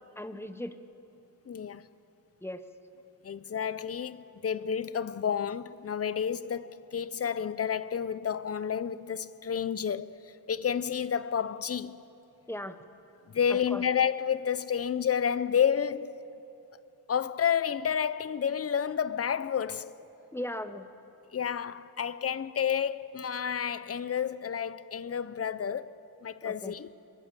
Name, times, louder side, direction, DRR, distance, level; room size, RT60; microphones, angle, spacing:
voice 1, 0.2-0.8 2.4-2.6 12.5-12.8 13.5-13.8 20.3-20.9 26.4-26.7, left 1 dB, 5° left, 0.8 m, -37 dB
voice 2, 1.5-1.8 3.2-10.2 10.5-12.0 13.3-16.2 17.1-19.9 21.3-26.0 26.2-26.9, left 8 dB, 40° left, 0.5 m, -30 dB
23.5 x 20.5 x 6.8 m
wide cardioid pair, 155°, 38 cm